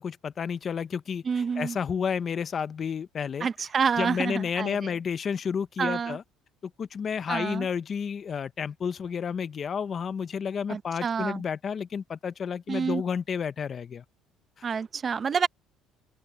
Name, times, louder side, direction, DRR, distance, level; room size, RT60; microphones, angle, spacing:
voice 1, 0.0-3.5 4.0-6.2 6.6-14.0 14.6-14.7, left 6 dB, 35° left, 0.7 m, -31 dB
voice 2, 1.3-1.8 3.4-4.9 5.8-6.2 7.3-7.7 10.7-11.4 12.7-13.0 14.6-15.5, right 6 dB, 30° right, 0.7 m, -28 dB
open air
cardioid pair, 125°, 0 cm